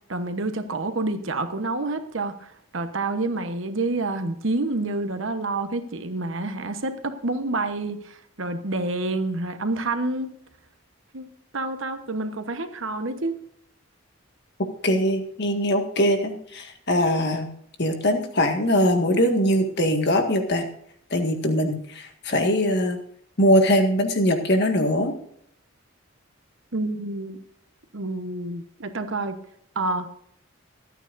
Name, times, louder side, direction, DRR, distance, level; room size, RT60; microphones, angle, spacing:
voice 1, 0.1-10.3 11.1-11.3 11.5-13.4 26.7-27.4 27.9-29.4 29.7-30.1, right 2 dB, 65° right, 7 dB, 1.1 m, -28 dB
voice 2, 14.8-17.5 17.8-20.7 21.1-23.0 23.4-25.1, equal, 55° left, 4 dB, 1.9 m, -22 dB
25.0 x 9.1 x 2.6 m, 0.67 s
head